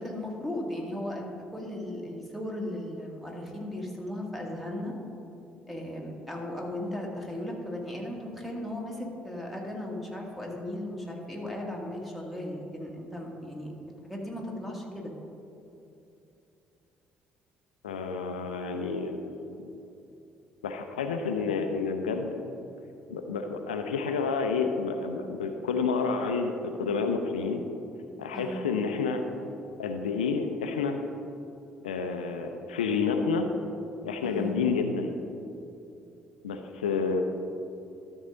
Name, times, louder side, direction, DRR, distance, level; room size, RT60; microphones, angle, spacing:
voice 1, 0.0-4.9 5.7-13.7 14.0-15.1 28.3-28.6 34.2-34.5, left 1 dB, ahead, -1 dB, 1.9 m, -36 dB
voice 2, 17.8-19.2 19.5-19.7 20.6-22.6 23.1-27.6 28.2-29.2 29.8-31.0 31.8-33.5 34.0-35.1 36.4-37.2, left 5 dB, 80° left, 6 dB, 0.5 m, -29 dB
12.5 x 6.3 x 3.8 m, 2.8 s
figure-of-eight pair, 45°, 5 cm